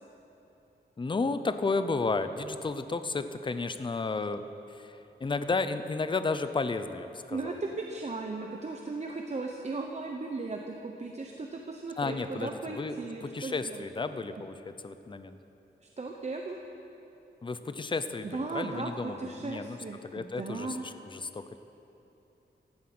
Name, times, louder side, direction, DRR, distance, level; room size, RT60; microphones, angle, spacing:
voice 1, 1.0-4.4 4.7-7.6 12.0-15.4 17.4-19.8 20.0-21.6, left 3 dB, 25° left, 10 dB, 0.6 m, -33 dB
voice 2, 7.3-13.9 15.8-16.6 18.3-20.9, right 3 dB, 35° right, 2 dB, 0.9 m, -37 dB
16.0 x 11.5 x 6.1 m, 3.0 s
wide cardioid pair, 140°, 19 cm